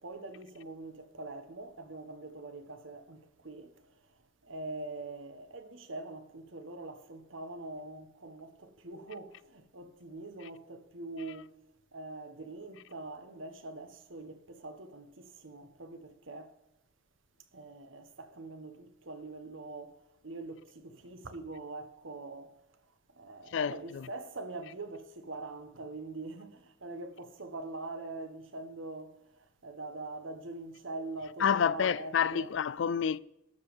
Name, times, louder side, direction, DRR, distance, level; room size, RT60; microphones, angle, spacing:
voice 1, 0.0-3.7 4.4-11.5 11.9-16.5 17.5-20.0 20.2-22.5 23.1-29.2 29.6-32.5, right 2 dB, 70° right, 1.3 m, -43 dB
voice 2, 23.5-24.1 31.4-33.2, left 7 dB, 65° left, 0.4 m, -29 dB
13.5 x 5.3 x 6.9 m
head